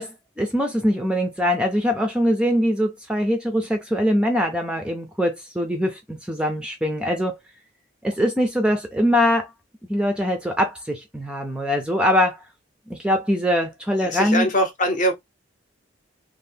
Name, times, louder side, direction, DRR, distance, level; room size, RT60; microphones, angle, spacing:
voice 1, 0.0-7.3 8.0-9.5 9.9-12.4 12.9-14.5, equal, 5° right, 0.4 m, -22 dB
voice 2, 14.0-15.1, equal, 40° left, 0.7 m, -22 dB
2.7 x 2.0 x 3.2 m
head